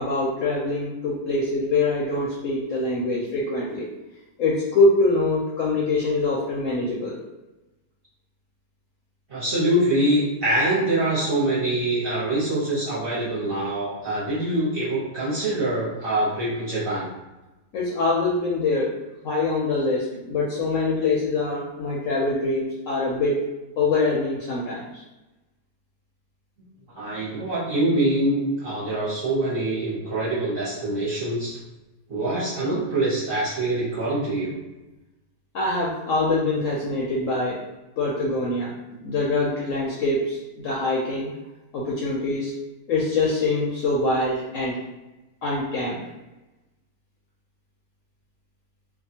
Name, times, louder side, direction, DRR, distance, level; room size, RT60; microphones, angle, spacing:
voice 1, 0.0-3.9 4.4-7.2 17.7-18.9 19.2-23.4 23.8-25.0 35.5-37.6 38.0-38.7 39.0-41.3 41.7-42.5 42.9-44.8 45.4-46.0, left 2 dB, 70° left, -4 dB, 0.8 m, -24 dB
voice 2, 9.3-17.1 26.9-31.6 32.1-34.6, right 1 dB, 45° right, -9 dB, 0.9 m, -24 dB
2.6 x 2.3 x 2.7 m, 1.1 s
omnidirectional pair, 1.7 m